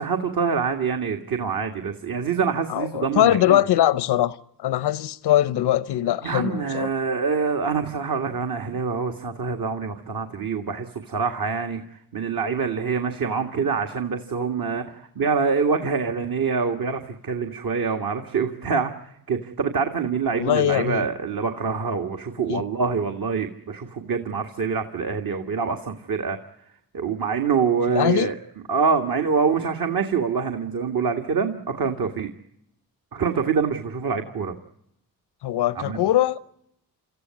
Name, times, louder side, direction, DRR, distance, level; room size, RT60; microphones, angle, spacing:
voice 1, 0.0-3.6 6.2-26.4 26.9-28.4 28.7-32.3 33.1-34.6 35.8-36.0, right 5 dB, 60° right, 1.9 m, -25 dB
voice 2, 2.7-6.9 20.3-21.1 22.5-22.6 27.9-28.3 35.4-36.4, left 13 dB, 80° left, 0.9 m, -22 dB
26.5 x 14.0 x 9.5 m
supercardioid pair, 45°, 40 cm